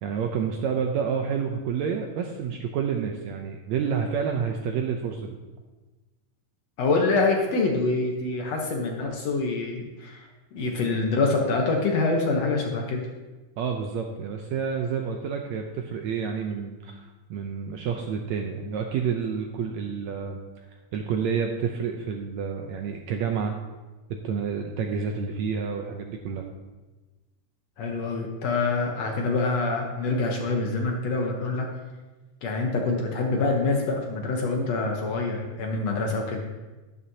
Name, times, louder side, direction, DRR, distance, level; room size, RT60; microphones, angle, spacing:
voice 1, 0.0-5.4 13.6-20.4 20.9-23.6 24.1-26.5, right 6 dB, 75° right, 3 dB, 1.7 m, -29 dB
voice 2, 6.8-10.3 10.5-13.0 27.8-31.7 32.4-36.4, left 3 dB, 65° left, 1 dB, 1.9 m, -25 dB
12.5 x 11.0 x 2.8 m, 1.2 s
omnidirectional pair, 3.8 m